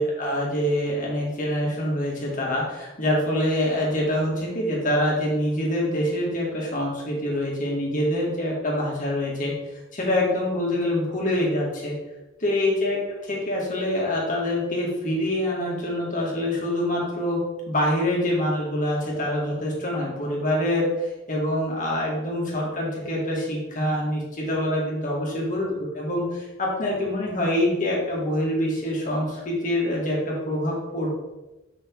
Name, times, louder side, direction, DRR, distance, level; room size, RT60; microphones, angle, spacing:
voice 1, 0.0-9.5 9.9-11.9 12.4-31.1, left 1 dB, 45° left, -3 dB, 2.3 m, -25 dB
6.3 x 5.9 x 4.8 m, 1.0 s
head